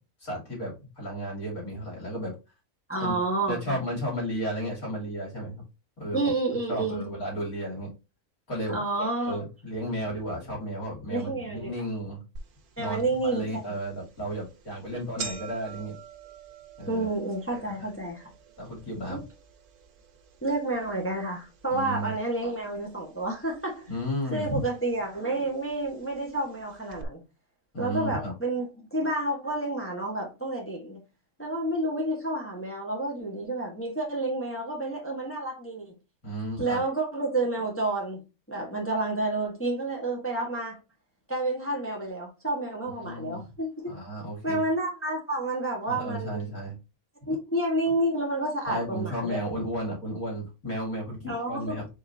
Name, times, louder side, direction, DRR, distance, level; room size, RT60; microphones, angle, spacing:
voice 1, 0.2-2.3 3.0-3.1 3.5-5.6 6.0-6.2 6.7-7.9 8.5-12.2 12.8-16.0 16.8-17.1 17.5-17.6 18.6-19.2 21.7-22.1 23.9-24.7 27.7-28.3 36.2-36.8 43.0-43.5 43.9-44.6 45.9-46.8 48.7-51.9, equal, 70° left, 3.3 m, -33 dB
voice 2, 2.9-3.8 6.1-7.0 8.7-9.4 11.1-11.7 12.8-13.6 16.9-18.3 19.1-19.2 20.4-23.9 24.3-27.2 27.8-31.0 31.4-35.9 36.6-38.2 38.5-40.8 41.3-43.9 44.4-46.4 47.2-49.4 51.3-51.8, right 2 dB, 10° left, 1.2 m, -30 dB
sound 1, 12.4-12.5 13.0-13.1 13.9-14.1 14.4-14.6 14.8-23.0 23.3-24.0 24.8-24.9 25.9-26.0 26.2-26.3 26.9-27.0, right 6 dB, 85° right, 1.3 m, -45 dB
5.1 x 3.8 x 2.6 m
omnidirectional pair, 1.6 m